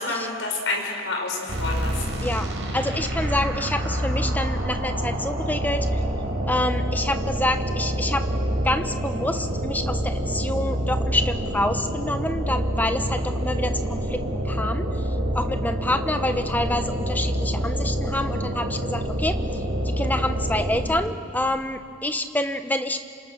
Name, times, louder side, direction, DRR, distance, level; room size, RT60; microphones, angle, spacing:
voice 1, 0.0-2.3, left 3 dB, 70° left, 0 dB, 5.7 m, -29 dB
sound 1, 1.5-21.1, equal, 70° right, 4.5 m, -27 dB
voice 2, 2.2-6.0 6.5-8.2 8.6-15.1 15.3-23.0, left 1 dB, 10° left, 8 dB, 1.0 m, -27 dB
28.0 x 26.5 x 6.4 m, 2.2 s
head